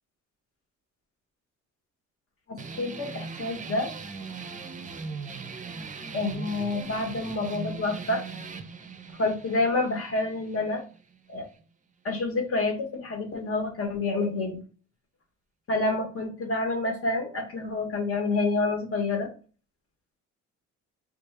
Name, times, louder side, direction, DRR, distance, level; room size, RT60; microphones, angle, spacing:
voice 1, 2.5-3.9 6.1-8.2 9.2-10.8 11.3-11.5 12.0-14.6 15.7-19.3, left 2 dB, 50° left, 3 dB, 1.2 m, -28 dB
sound 1, 2.6-11.6, right 4 dB, 25° right, 0.5 m, -39 dB
3.4 x 2.3 x 3.3 m, 0.37 s
cardioid pair, 90°, 30 cm